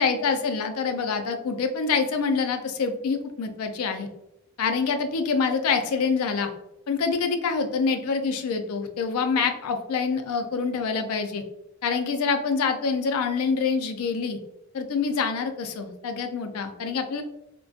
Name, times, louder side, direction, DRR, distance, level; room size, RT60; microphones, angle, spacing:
voice 1, 0.0-4.1 4.6-6.5 6.9-11.4 11.8-14.4 14.7-17.2, left 5 dB, 85° left, 6 dB, 0.4 m, -26 dB
2.5 x 2.2 x 2.4 m, 0.84 s
head